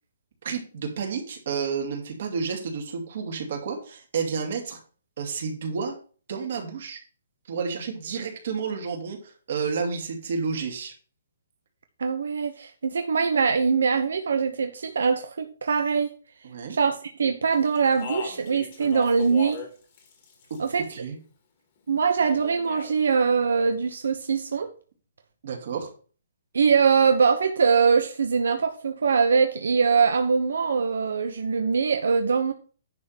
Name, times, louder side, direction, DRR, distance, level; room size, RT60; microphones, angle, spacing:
voice 1, 0.4-4.8 5.2-6.0 6.3-7.0 7.5-10.9 16.4-16.7 20.5-20.6 20.9-21.2 25.4-25.9, right 5 dB, 45° right, 2 dB, 2.5 m, -31 dB
voice 2, 12.0-16.1 16.7-19.6 20.6-20.9 21.9-24.7 26.5-32.5, right 5 dB, 75° right, 7 dB, 0.9 m, -22 dB
Speech, 17.7-19.7 20.0-20.8 22.3-22.9, left 6 dB, 30° left, 1.9 m, -38 dB
10.5 x 3.6 x 7.2 m, 0.40 s
hypercardioid pair, 175°, 0 cm